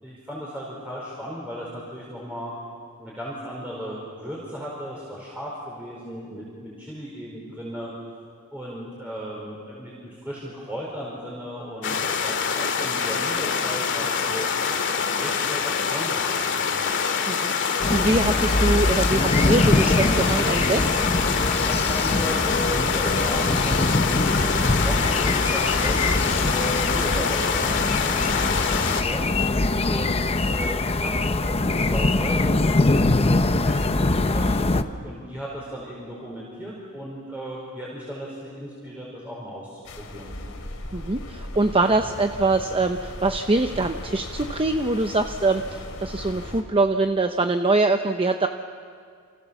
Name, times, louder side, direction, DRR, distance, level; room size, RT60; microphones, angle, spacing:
voice 1, 0.0-2.5 3.0-7.9 8.5-14.5 15.2-16.8 21.6-29.2 29.8-34.6 35.0-40.3, equal, 5° right, -6 dB, 5.1 m, -36 dB
sound 1, 11.8-29.0, left 6 dB, 60° left, 2.1 m, -25 dB
sound 2, 17.8-34.8, left 2 dB, 30° left, 0.8 m, -23 dB
voice 2, 17.9-20.8 40.9-48.5, right 2 dB, 25° right, 6 dB, 0.8 m, -23 dB
sound 3, 39.8-46.6, left 1 dB, 75° left, 3.4 m, -37 dB
29.0 x 28.5 x 7.2 m, 2.2 s
head